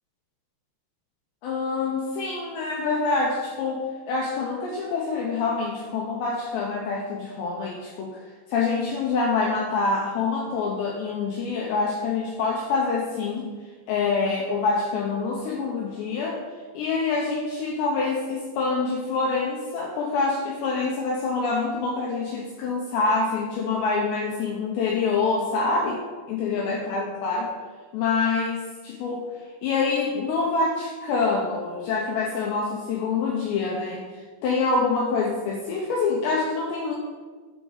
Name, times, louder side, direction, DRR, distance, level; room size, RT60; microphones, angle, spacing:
voice 1, 1.4-8.2 8.5-13.5 13.9-16.4 16.7-26.0 26.3-27.5 27.9-29.3 29.6-36.9, left 4 dB, 75° left, -2 dB, 2.8 m, -26 dB
11.0 x 6.5 x 4.0 m, 1.4 s
omnidirectional pair, 5.5 m